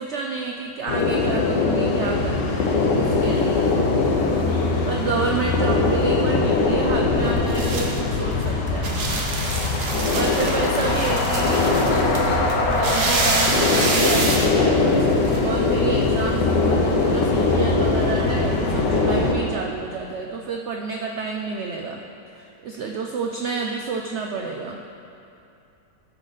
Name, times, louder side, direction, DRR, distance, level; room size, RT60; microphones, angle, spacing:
voice 1, 0.0-3.7 4.9-9.0 10.1-15.1 15.4-22.0 22.3-24.8, right 4 dB, 80° right, 2 dB, 0.6 m, -29 dB
sound 1, 0.9-19.3, left 3 dB, 85° left, 1.5 m, -21 dB
voice 2, 4.3-5.1 9.6-10.5, left 1 dB, 55° left, -6 dB, 2.1 m, -42 dB
sound 2, 6.6-15.4, right 3 dB, 45° right, 0.9 m, -27 dB
sound 3, 11.2-19.0, right 2 dB, 25° right, 1.1 m, -40 dB
13.0 x 4.9 x 4.1 m, 2.6 s
omnidirectional pair, 1.8 m